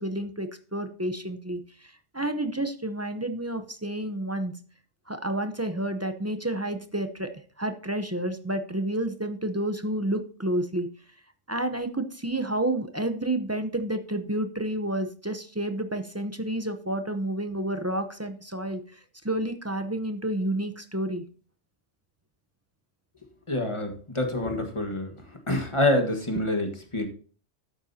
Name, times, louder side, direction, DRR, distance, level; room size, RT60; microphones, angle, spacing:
voice 1, 0.0-4.5 5.1-10.9 11.5-19.0 19.2-21.2, right 1 dB, 15° right, 7 dB, 0.6 m, -30 dB
voice 2, 23.5-25.1 25.5-27.1, left 1 dB, 25° left, 4 dB, 1.6 m, -26 dB
12.0 x 8.8 x 2.8 m, 0.41 s
omnidirectional pair, 1.2 m